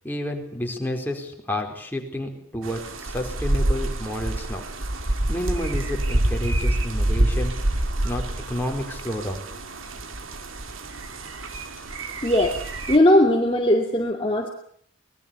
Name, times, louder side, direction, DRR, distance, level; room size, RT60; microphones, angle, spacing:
voice 1, 0.0-4.6 5.3-7.5 8.0-9.4, left 1 dB, 10° left, 1 dB, 4.4 m, -30 dB
sound 1, 2.6-13.0, right 1 dB, 85° right, 2.5 m, -27 dB
voice 2, 12.2-12.6 12.9-14.5, left 1 dB, 25° left, 1 dB, 2.5 m, -18 dB
25.0 x 20.5 x 7.0 m, 0.63 s
head